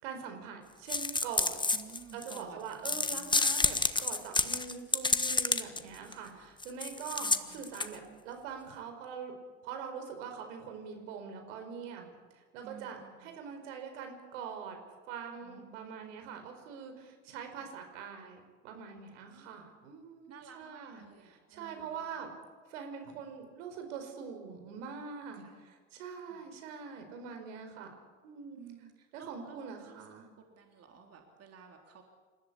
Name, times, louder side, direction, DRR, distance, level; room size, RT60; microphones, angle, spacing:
voice 1, 0.0-1.6 2.1-9.3 9.6-12.1 12.3-14.8 15.1-22.3 22.7-28.9 29.1-30.3, right 6 dB, 65° right, 5 dB, 4.9 m, -44 dB
sound 1, 0.9-2.4 2.8-5.8 6.1-6.2 6.6-7.9, left 3 dB, 10° left, 1.4 m, -29 dB
voice 2, 1.7-3.9 6.1-6.4 7.2-7.6 10.9-11.2 12.6-13.2 15.4-16.1 19.3-19.6 20.3-22.0 25.4-25.6 26.3-26.4 28.6-30.0 30.5-32.0, right 6 dB, 40° right, 2 dB, 3.6 m, -53 dB
28.5 x 14.5 x 9.9 m, 1.4 s
figure-of-eight pair, 65°, 39 cm